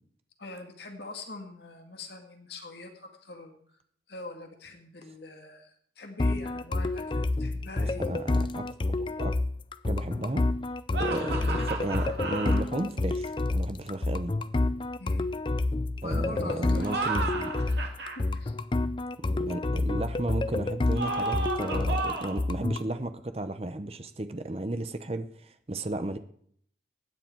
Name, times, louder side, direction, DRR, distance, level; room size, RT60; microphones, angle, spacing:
voice 1, 0.4-3.6 4.1-8.1 15.0-15.3 16.0-16.9 18.2-18.5, left 2 dB, 70° left, 4 dB, 2.1 m, -43 dB
sound 1, 6.2-22.9, left 2 dB, 25° left, 0.4 m, -29 dB
voice 2, 7.8-9.3 9.8-10.5 10.9-14.4 16.0-17.5 19.2-26.2, right 1 dB, 35° right, 10 dB, 0.8 m, -34 dB
sound 2, 10.9-12.6 16.7-18.2 20.9-22.4, right 3 dB, 70° right, 2.3 m, -32 dB
16.5 x 9.9 x 4.6 m, 0.62 s
head